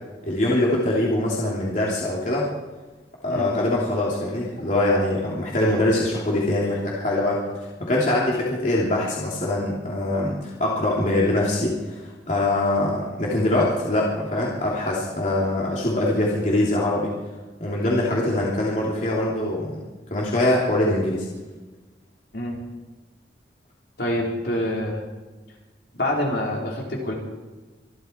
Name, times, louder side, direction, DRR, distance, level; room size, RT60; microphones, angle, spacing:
voice 1, 0.2-2.5 3.2-17.1 17.6-19.8 20.1-21.3, left 1 dB, 40° left, -5 dB, 3.1 m, -23 dB
voice 2, 24.0-25.0 25.9-27.1, left 1 dB, 60° left, -2 dB, 4.3 m, -26 dB
25.5 x 12.0 x 4.5 m, 1.2 s
head